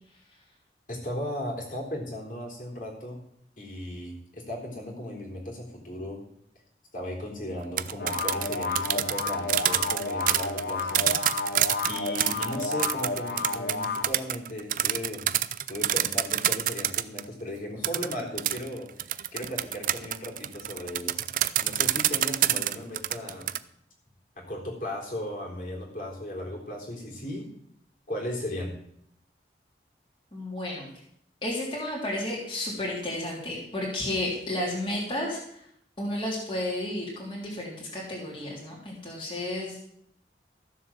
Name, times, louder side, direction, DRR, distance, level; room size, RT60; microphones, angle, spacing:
voice 1, 0.9-3.2 3.6-6.2 6.9-11.1 11.9-15.3 15.7-21.2 21.6-23.5 24.4-27.5 28.1-28.7 33.4-33.7 34.0-35.0, left 1 dB, 50° left, -2 dB, 3.7 m, -36 dB
sound 1, 7.6-17.2 17.8-23.6, right 12 dB, 50° right, 0.5 m, -27 dB
sound 2, 8.0-14.0, left 3 dB, 65° left, 0.9 m, -31 dB
voice 2, 30.3-30.9 31.4-35.7 36.0-39.8, left 1 dB, 30° left, -5 dB, 3.3 m, -32 dB
14.0 x 7.4 x 7.3 m, 0.70 s
head